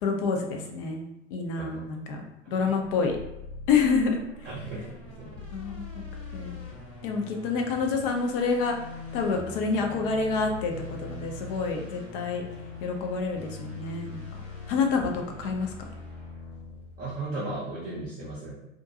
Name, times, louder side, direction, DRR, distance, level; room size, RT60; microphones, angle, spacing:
voice 1, 0.0-3.2 3.7-4.2 5.5-6.0 6.3-6.6 7.0-8.8 9.1-10.7 11.0-12.4 12.8-14.2 14.7-15.7, left 4 dB, 50° left, 3 dB, 0.6 m, -28 dB
voice 2, 2.4-2.8 4.4-5.4 17.0-18.5, right 2 dB, 25° right, -6 dB, 0.6 m, -36 dB
sound 1, 2.8-17.4, left 3 dB, 65° left, 1.3 m, -42 dB
2.4 x 2.2 x 2.7 m, 0.90 s
figure-of-eight pair, 90°, 36 cm